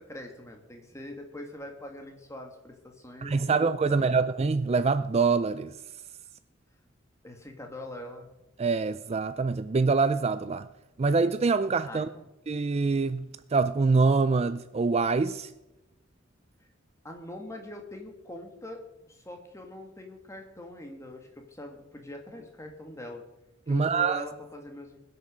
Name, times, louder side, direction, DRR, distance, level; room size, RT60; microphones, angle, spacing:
voice 1, 0.0-4.2 7.2-8.3 11.9-12.3 17.0-18.8 19.1-23.2 23.7-25.0, left 1 dB, 15° left, 1.9 m, -43 dB
voice 2, 3.2-5.8 8.6-10.7 11.0-12.1 12.5-15.5 23.7-24.3, right 4 dB, 35° right, 0.4 m, -25 dB
20.5 x 6.8 x 6.3 m
head